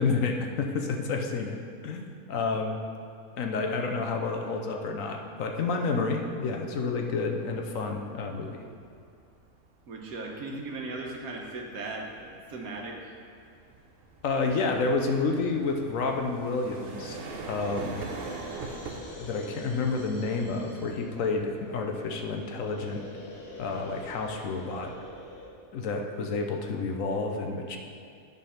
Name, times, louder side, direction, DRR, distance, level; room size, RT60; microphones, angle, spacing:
voice 1, 0.0-1.5 1.8-2.8 3.4-8.6 14.2-18.0 19.0-23.0 23.6-24.9 25.7-27.8, left 4 dB, 70° left, 3 dB, 1.1 m, -30 dB
sound 1, 6.3-22.6, right 3 dB, 50° right, 0.8 m, -45 dB
voice 2, 9.9-13.1, right 2 dB, 80° right, 0 dB, 1.5 m, -37 dB
sound 2, 17.6-25.5, left 2 dB, 40° left, 1.1 m, -46 dB
10.5 x 4.1 x 5.7 m, 2.5 s
omnidirectional pair, 1.5 m